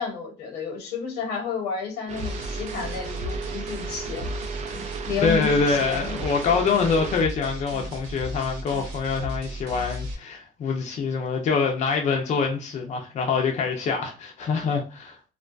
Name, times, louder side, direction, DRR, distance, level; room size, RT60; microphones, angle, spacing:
voice 1, 0.0-4.3 5.1-6.2, left 6 dB, 85° left, 1.0 m, -31 dB
sound 1, 2.1-7.2, right 5 dB, 45° right, 0.4 m, -35 dB
sound 2, 2.2-10.1, equal, 85° right, 0.8 m, -35 dB
voice 2, 5.2-15.2, left 5 dB, 45° left, 0.5 m, -25 dB
2.3 x 2.2 x 2.3 m
cardioid pair, 110°, 17 cm